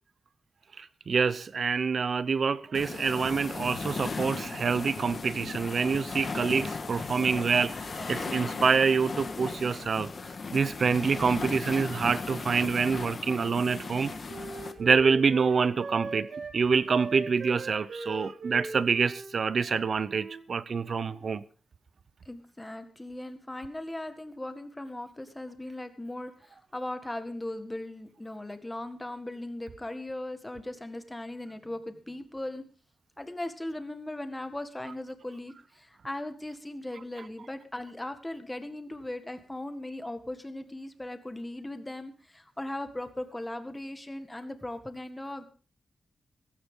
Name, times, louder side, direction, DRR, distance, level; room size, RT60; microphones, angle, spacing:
voice 1, 0.8-10.1 10.5-14.1 14.8-16.3 16.5-21.4, right 5 dB, 50° right, 0.8 m, -26 dB
sound 1, 2.7-14.7, left 4 dB, 40° left, 1.6 m, -37 dB
Wind instrument woodwind instrument, 13.2-16.6 16.9-20.4 20.7-21.3, right 4 dB, 75° right, 5.6 m, -40 dB
voice 2, 22.3-32.7 33.2-45.4, left 1 dB, 10° left, 1.8 m, -38 dB
17.0 x 16.0 x 3.8 m
wide cardioid pair, 155°, 0 cm